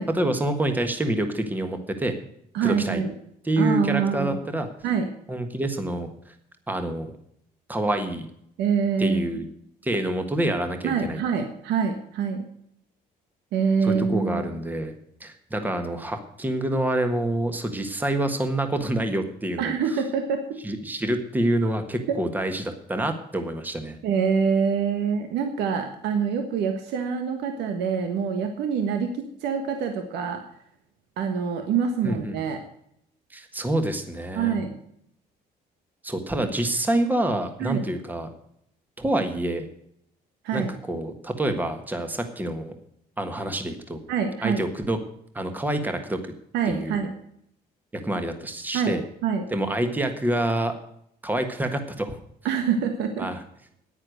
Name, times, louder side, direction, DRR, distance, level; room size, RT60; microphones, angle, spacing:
voice 1, 0.1-2.1 2.6-3.0 3.4-4.7 5.3-6.1 6.7-7.1 7.7-8.3 9.0-9.4 9.8-11.2 13.8-14.9 15.2-19.7 20.6-24.0 32.0-32.4 33.3-34.6 36.0-38.3 39.0-39.7 40.5-42.7 43.2-44.0 44.4-45.0 45.3-46.2 46.7-47.0 47.9-49.0 49.5-50.7 51.2-52.2 53.2-53.4, right 1 dB, 10° right, 7 dB, 1.5 m, -27 dB
voice 2, 2.5-3.1 3.6-4.4 4.8-5.1 8.6-9.2 10.8-12.4 13.5-14.5 19.6-20.4 24.0-30.4 31.2-32.6 34.3-34.8 36.4-36.5 37.6-37.8 40.4-40.7 44.1-44.6 46.5-47.1 48.7-49.4 52.4-53.3, right 6 dB, 85° right, 6 dB, 1.5 m, -25 dB
9.9 x 9.8 x 6.5 m, 0.71 s
cardioid pair, 110°, 17 cm